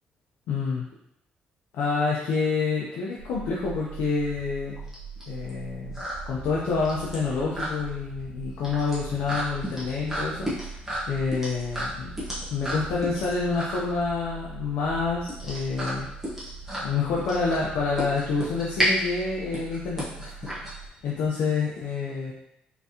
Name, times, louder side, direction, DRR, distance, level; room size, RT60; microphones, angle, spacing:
voice 1, 0.5-0.8 1.7-4.8 5.3-10.5 11.1-12.1 12.5-16.1 16.8-20.5 21.0-22.3, left 4 dB, 85° left, -5 dB, 0.7 m, -28 dB
sound 1, 3.2-20.9, right 6 dB, 75° right, 0.7 m, -43 dB
sound 2, 3.5-21.3, equal, 10° right, 1.2 m, -33 dB
sound 3, 11.2-18.0, left 4 dB, 60° right, 1.2 m, -49 dB
3.9 x 3.5 x 2.8 m, 0.80 s
cardioid pair, 155°, 3 cm